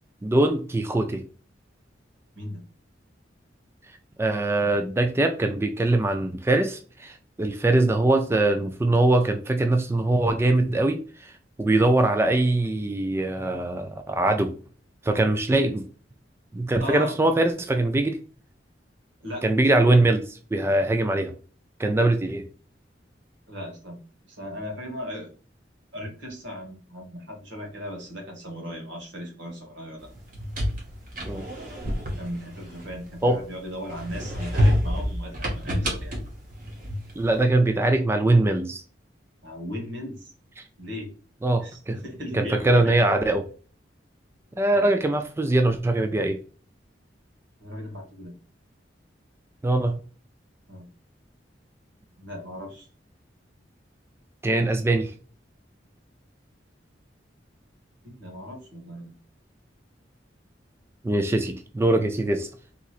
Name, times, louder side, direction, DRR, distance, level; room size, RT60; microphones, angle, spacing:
voice 1, 0.2-1.2 4.2-11.3 11.6-14.5 15.0-15.8 16.5-18.2 19.4-21.3 21.8-22.5 31.2-31.4 33.2-33.4 37.2-38.8 41.4-42.0 42.3-43.5 44.6-46.4 49.6-50.0 54.4-55.1 61.0-62.5, right 2 dB, 15° right, 0.3 m, -22 dB
voice 2, 16.8-17.2 19.2-19.4 23.5-24.0 24.3-25.3 25.9-30.1 32.2-36.1 39.4-40.3 40.8-41.1 41.6-43.0 44.7-44.9 47.6-48.3 50.7-50.9 52.2-52.9 58.0-59.2, equal, 90° right, 1.5 m, -37 dB
sound 1, 30.2-33.4 33.9-37.3, equal, 50° right, 1.2 m, -28 dB
3.7 x 2.9 x 2.4 m
head